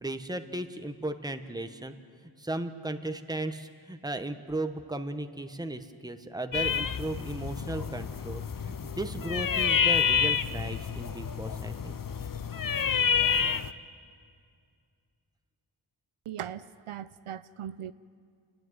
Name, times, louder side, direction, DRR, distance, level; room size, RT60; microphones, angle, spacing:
voice 1, 0.0-1.9 2.4-12.0, right 1 dB, 10° right, 8 dB, 1.1 m, -36 dB
sound 1, 6.5-13.7, left 7 dB, 40° left, 0.7 m, -28 dB
voice 2, 16.3-17.9, right 10 dB, 80° right, 14 dB, 0.6 m, -39 dB
28.5 x 10.0 x 9.4 m, 2.3 s
wide cardioid pair, 55°, 50 cm